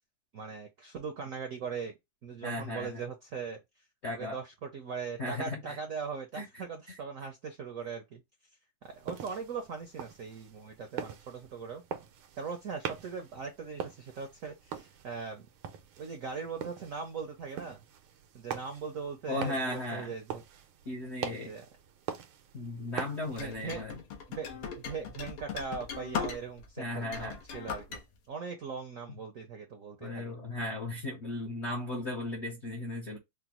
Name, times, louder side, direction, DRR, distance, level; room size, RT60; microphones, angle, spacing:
voice 1, 0.3-1.9 2.2-3.6 4.1-8.2 8.8-11.8 12.4-15.5 16.0-17.8 18.3-20.4 21.5-21.6 23.4-23.8 24.4-28.0 28.3-30.3, right 5 dB, 75° right, 0.7 m, -40 dB
voice 2, 2.4-3.0 4.0-4.4 5.2-5.8 6.3-6.6 6.9-7.0 19.3-20.1 20.9-21.5 22.5-24.0 26.8-27.4 30.0-33.2, left 2 dB, 70° left, 0.6 m, -36 dB
sound 1, 8.8-23.8, right 8 dB, 90° right, 1.5 m, -43 dB
sound 2, 23.4-26.7 27.0-28.0, left 6 dB, 90° left, 1.8 m, -38 dB
5.0 x 2.0 x 2.9 m
omnidirectional pair, 2.3 m